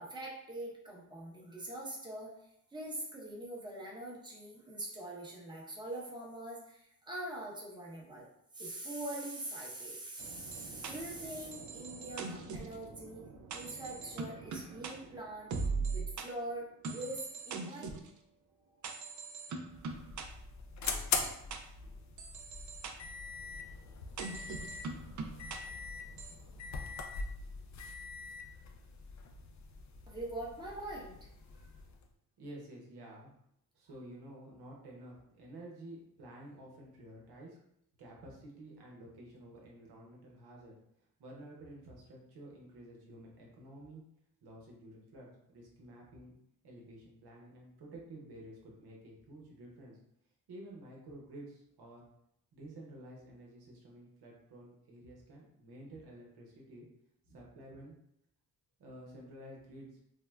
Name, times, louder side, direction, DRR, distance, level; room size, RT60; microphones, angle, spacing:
voice 1, 0.0-2.3 2.7-8.3 8.5-13.3 13.5-15.6 15.9-18.0 19.0-19.1 30.1-31.3, right 1 dB, 10° right, -3 dB, 0.8 m, -43 dB
sound 1, 10.2-16.3 16.8-18.1 18.8-20.2 20.8-21.6 22.2-22.9 24.2-25.6 26.2-26.3, right 4 dB, 50° right, 0.5 m, -41 dB
sound 2, 19.6-32.1, left 4 dB, 50° left, 0.5 m, -42 dB
voice 2, 32.4-33.3 33.7-37.6 38.0-40.7 41.2-44.0 44.4-46.3 46.6-50.0 50.5-52.0 52.5-56.9 57.3-57.9 58.8-60.0, right 1 dB, 80° right, -3 dB, 0.9 m, -51 dB
3.5 x 2.0 x 2.3 m, 0.76 s
cardioid pair, 60°, 38 cm